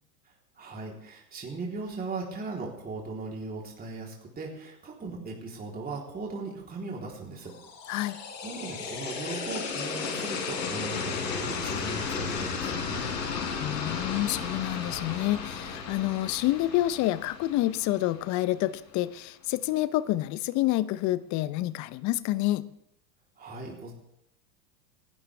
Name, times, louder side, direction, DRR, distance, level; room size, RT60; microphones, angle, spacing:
voice 1, 0.6-7.5 7.9-13.2 23.4-23.9, right 3 dB, 20° right, -2 dB, 3.7 m, -38 dB
sound 1, 7.5-18.5, left 5 dB, 80° left, 4.1 m, -34 dB
voice 2, 13.6-22.7, left 15 dB, 35° left, 15 dB, 0.8 m, -28 dB
29.5 x 12.0 x 3.5 m, 0.78 s
hypercardioid pair, 105°, 49 cm